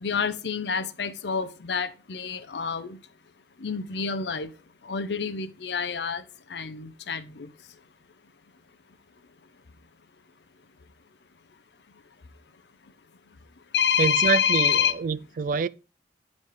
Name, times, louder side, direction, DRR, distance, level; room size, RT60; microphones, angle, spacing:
voice 1, 0.0-3.0 3.6-4.5 4.8-6.2 6.5-7.5 13.7-15.0, left 7 dB, 75° left, 0.7 m, -27 dB
voice 2, 14.0-15.7, right 5 dB, 50° right, 0.3 m, -26 dB
9.5 x 4.2 x 4.8 m
head